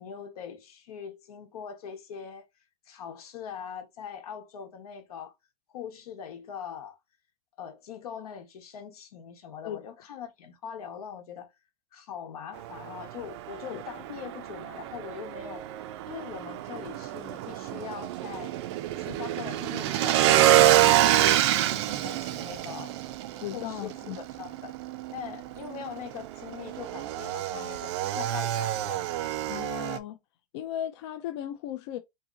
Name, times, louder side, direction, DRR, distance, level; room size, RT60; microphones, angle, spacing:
voice 1, 0.0-2.4 2.9-5.3 5.7-7.0 7.6-11.5 11.9-15.7 16.1-18.5 19.0-23.0 23.5-24.7 25.1-29.1, left 8 dB, 85° left, 1.1 m, -42 dB
Motorcycle / Engine, 12.5-30.0, right 13 dB, 50° right, 0.4 m, -27 dB
voice 2, 23.4-24.2 29.5-30.2 30.5-32.0, left 11 dB, 45° left, 0.4 m, -36 dB
2.8 x 2.8 x 3.7 m
supercardioid pair, 160°, 19 cm